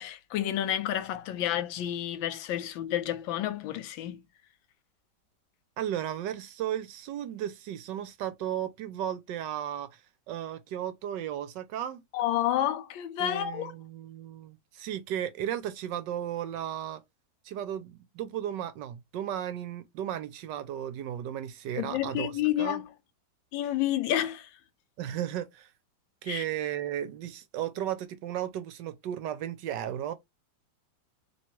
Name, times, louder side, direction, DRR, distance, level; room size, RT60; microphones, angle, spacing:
voice 1, 0.0-4.3 12.1-13.7 21.8-22.9 23.5-24.5 26.2-26.4, left 12 dB, 85° left, 1.4 m, -30 dB
voice 2, 5.8-10.0 10.3-12.0 13.2-17.0 17.4-22.3 22.6-22.8 25.0-25.7 26.2-30.1, right 10 dB, 75° right, 1.2 m, -35 dB
3.1 x 3.0 x 4.4 m
omnidirectional pair, 2.1 m